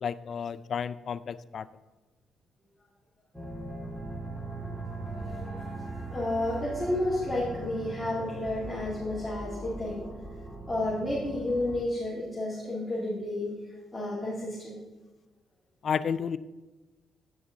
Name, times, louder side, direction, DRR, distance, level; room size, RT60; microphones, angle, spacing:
voice 1, 0.0-1.7 15.8-16.4, left 7 dB, 55° left, 16 dB, 0.3 m, -31 dB
sound 1, 3.3-11.8, right 2 dB, 15° right, 1.8 m, -39 dB
voice 2, 5.3-5.8 6.1-10.0 10.7-13.5 13.9-14.8, left 1 dB, 10° left, -8 dB, 2.2 m, -31 dB
9.1 x 6.2 x 3.8 m, 1.2 s
cardioid pair, 90°, 0 cm